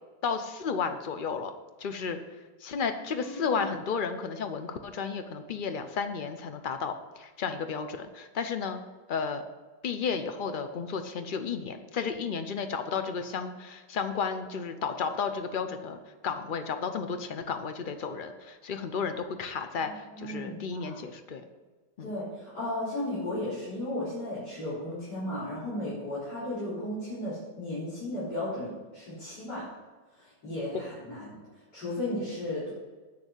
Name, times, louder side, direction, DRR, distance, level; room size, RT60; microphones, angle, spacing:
voice 1, 0.2-1.5 1.8-2.2 2.6-9.4 9.8-21.4 22.0-22.1, left 5 dB, 80° left, 7 dB, 0.4 m, -33 dB
voice 2, 3.2-3.6 19.9-21.0 22.0-29.7 30.2-31.4 31.7-32.7, left 1 dB, 65° left, -12 dB, 4.4 m, -35 dB
8.3 x 6.9 x 8.1 m, 1.3 s
omnidirectional pair, 2.0 m